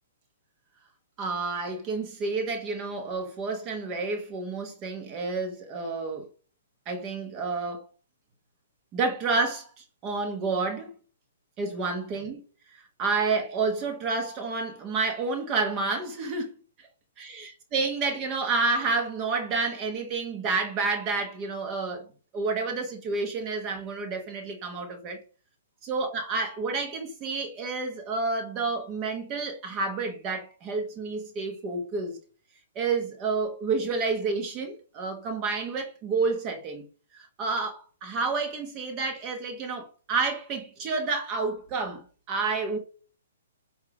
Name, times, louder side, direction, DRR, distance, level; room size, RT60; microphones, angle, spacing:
voice 1, 1.2-6.3 6.9-7.8 8.9-10.9 11.6-12.4 12.7-16.6 17.2-22.1 22.3-25.2 25.9-32.2 32.7-36.8 37.1-42.8, right 4 dB, 25° right, 1.3 m, -29 dB
8.1 x 2.8 x 4.8 m
hypercardioid pair, 150°, 0 cm